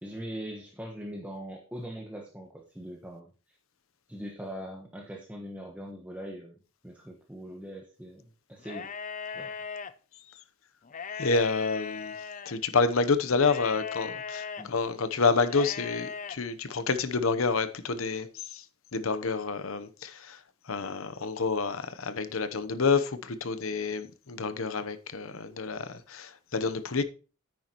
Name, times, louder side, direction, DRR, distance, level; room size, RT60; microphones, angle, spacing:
voice 1, 0.0-3.6 4.1-6.6 6.8-8.9 9.3-9.5 14.6-14.7, equal, 5° right, 1.2 m, -41 dB
sound 1, 8.6-9.9 10.8-12.5 13.4-14.6 15.5-16.4, left 6 dB, 35° left, 0.5 m, -38 dB
voice 2, 11.2-12.1 12.5-18.6 18.9-20.4 20.7-27.0, left 4 dB, 80° left, 0.9 m, -28 dB
9.4 x 9.4 x 3.0 m
head